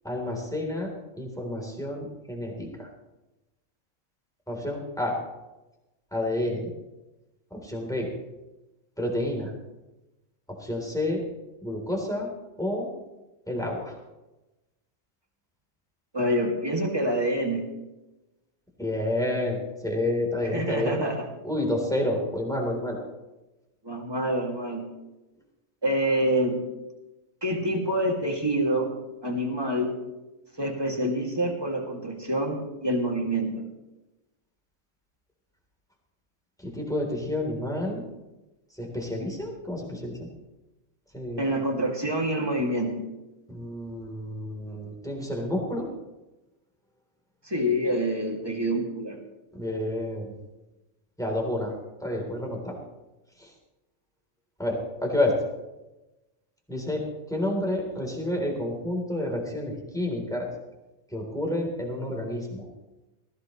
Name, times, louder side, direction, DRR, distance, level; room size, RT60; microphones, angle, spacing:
voice 1, 0.0-0.9 1.2-2.9 4.5-5.2 6.1-6.7 7.5-8.1 9.0-9.5 10.6-11.2 11.6-12.3 12.6-12.9 13.5-13.9 18.8-19.6 19.8-21.0 21.4-23.0 36.6-38.0 38.8-40.3 41.1-41.4 43.5-45.9 49.6-50.3 51.2-51.7 52.0-52.8 53.4-53.5 54.6-55.3 56.7-60.5 61.1-62.7, left 1 dB, 5° left, 0 dB, 3.6 m, -29 dB
voice 2, 16.1-17.6 20.5-21.3 23.8-24.8 25.8-26.6 27.4-28.9 29.2-30.0 30.6-33.5 41.4-42.9 47.4-49.2, right 1 dB, 20° right, 0 dB, 2.5 m, -26 dB
19.0 x 15.5 x 3.2 m, 1.0 s
omnidirectional pair, 1.4 m